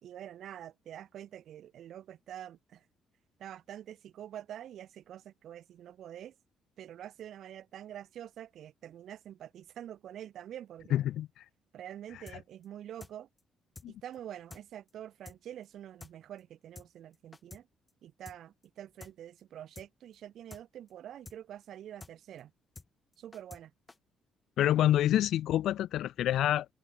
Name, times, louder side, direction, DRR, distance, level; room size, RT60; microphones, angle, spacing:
voice 1, 0.0-2.8 3.4-6.3 6.8-11.0 11.7-13.3 14.0-17.6 18.0-22.5 23.2-23.7, right 11 dB, 70° right, 3.1 m, -46 dB
voice 2, 10.9-11.3 13.8-13.9 24.6-26.7, left 12 dB, 80° left, 1.2 m, -27 dB
sound 1, 12.3-12.4 12.6-12.7 13.0-13.1 13.4-13.5 13.7-13.9 14.1-14.2 14.5-14.6 14.9-15.0 15.2-15.4 15.6-15.7 16.0-16.1 16.4-16.5 16.7-16.9 17.1-17.6 17.9-18.0 18.2-18.4 18.6-18.7 19.0-19.1 19.4-19.5 19.7-19.9 20.1-20.2 20.5-20.6 20.9-21.0 21.2-21.4 21.6-21.7 22.0-22.1 22.4-22.5 22.7-22.9 23.1-23.6 23.9-24.0, left 3 dB, 20° left, 7.1 m, -49 dB
cardioid pair, 90°, 0 cm